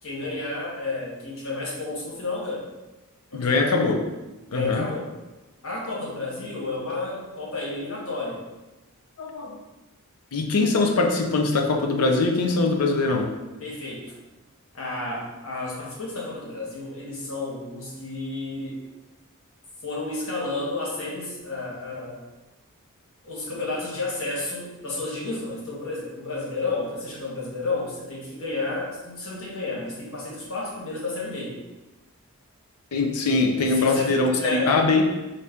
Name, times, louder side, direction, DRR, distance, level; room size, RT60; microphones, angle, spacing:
voice 1, 0.0-2.7 3.3-3.7 4.5-5.1 5.6-8.4 13.6-14.2 14.7-18.8 19.8-22.2 23.2-31.6 33.7-34.8, left 2 dB, 65° left, -5 dB, 1.2 m, -31 dB
voice 2, 3.3-4.0 4.5-4.9 9.2-9.6 10.3-13.3 32.9-35.0, left 3 dB, 80° left, 2 dB, 0.6 m, -22 dB
4.1 x 2.5 x 3.4 m, 1.1 s
head